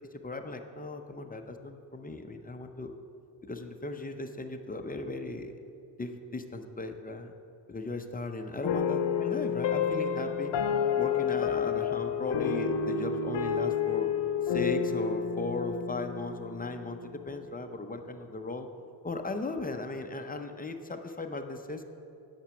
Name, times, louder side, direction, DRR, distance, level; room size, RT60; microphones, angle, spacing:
voice 1, 0.2-2.9 3.4-5.5 6.0-7.3 7.7-10.5 11.0-14.1 14.4-18.7 19.0-21.8, left 2 dB, 20° left, 5 dB, 0.5 m, -37 dB
sound 1, 8.6-17.2, left 7 dB, 85° left, 0.7 m, -30 dB
10.5 x 6.0 x 6.9 m, 2.7 s
wide cardioid pair, 165°, 42 cm